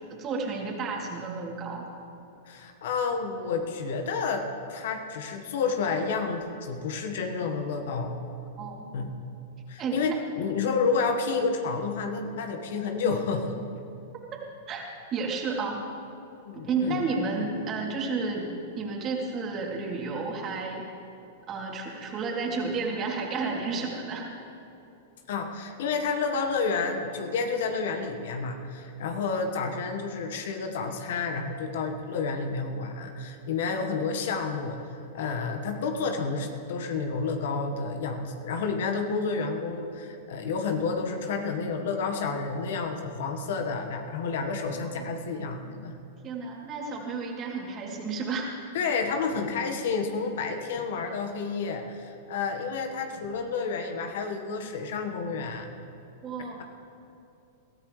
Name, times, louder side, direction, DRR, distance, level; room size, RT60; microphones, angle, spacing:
voice 1, 0.2-1.9 8.6-8.9 9.8-10.2 14.3-14.4 14.7-15.8 16.5-20.9 21.5-24.3 44.8-45.0 46.2-48.5 56.2-56.6, right 4 dB, 35° right, -1 dB, 3.0 m, -31 dB
voice 2, 2.5-8.2 8.9-9.1 9.7-13.6 16.4-17.0 17.3-17.5 25.3-34.8 35.1-45.9 48.7-55.7, left 4 dB, 65° left, 5 dB, 1.5 m, -30 dB
21.5 x 14.0 x 3.3 m, 2.8 s
hypercardioid pair, 105°, 0 cm